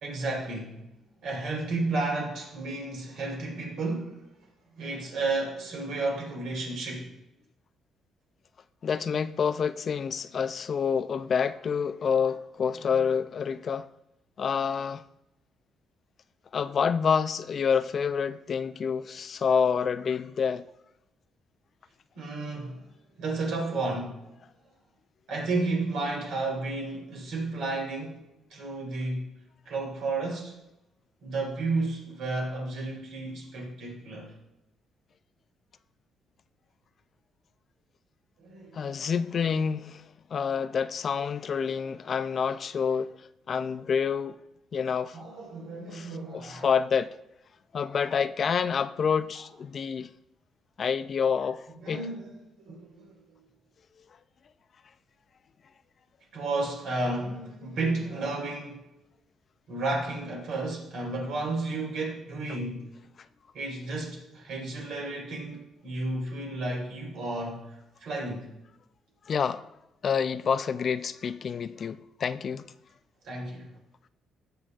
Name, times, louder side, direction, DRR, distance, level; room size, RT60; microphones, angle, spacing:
voice 1, 0.0-0.9 1.2-4.2 4.8-7.1 22.1-22.8 23.2-24.2 25.3-28.2 28.5-29.3 29.7-30.6 31.2-34.3 38.4-38.9 45.1-46.7 51.8-52.3 52.6-53.2 56.3-58.8 59.7-62.9 63.5-68.5 73.2-73.7, right 2 dB, 75° right, 3.8 m, -32 dB
voice 2, 8.8-13.9 14.4-15.0 16.5-20.7 38.7-44.4 44.7-45.2 45.9-47.1 47.7-50.1 50.8-52.1 69.3-69.7 70.0-72.7, left 6 dB, 45° left, 0.3 m, -28 dB
18.5 x 6.8 x 2.4 m
cardioid pair, 125°, 0 cm